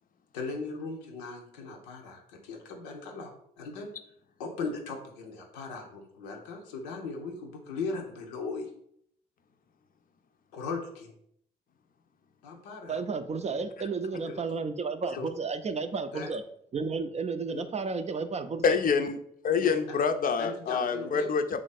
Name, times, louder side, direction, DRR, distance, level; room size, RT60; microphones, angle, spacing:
voice 1, 0.3-3.3 3.6-3.9 4.4-8.7 10.5-11.1 12.4-13.0 14.3-14.4 15.2-15.3 16.1-16.3 17.5-17.6 19.5-19.7 20.4-21.3, left 4 dB, 90° left, 2 dB, 0.6 m, -38 dB
voice 2, 12.9-16.4 16.7-18.8, right 4 dB, 35° right, 9 dB, 0.4 m, -32 dB
voice 3, 18.6-19.2 19.4-21.6, left 5 dB, 45° left, 8 dB, 0.5 m, -26 dB
3.1 x 2.5 x 4.0 m, 0.68 s
hypercardioid pair, 40°, 20 cm